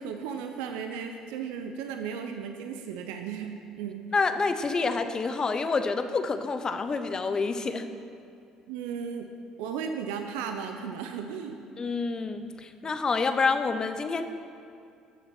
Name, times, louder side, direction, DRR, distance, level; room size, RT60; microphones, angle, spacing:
voice 1, 0.0-4.1 8.7-9.3 9.6-11.6, right 7 dB, 80° right, 5 dB, 0.7 m, -35 dB
voice 2, 4.1-7.8 11.8-14.2, left 4 dB, 35° left, 9 dB, 0.9 m, -28 dB
13.0 x 6.6 x 6.1 m, 2.5 s
hypercardioid pair, 70°, 2 cm